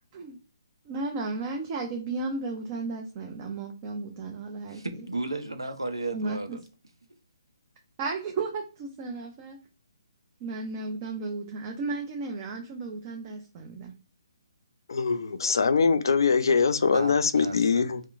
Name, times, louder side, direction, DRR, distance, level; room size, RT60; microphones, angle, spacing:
voice 1, 0.9-4.8 6.1-6.6 8.0-9.6 10.4-13.9, right 3 dB, 30° right, 0.5 m, -34 dB
voice 2, 4.7-6.6 16.9-17.8, right 2 dB, 90° right, 0.5 m, -34 dB
voice 3, 14.9-18.0, left 5 dB, 65° left, 0.4 m, -23 dB
2.9 x 2.0 x 2.4 m
figure-of-eight pair, 140°, 2 cm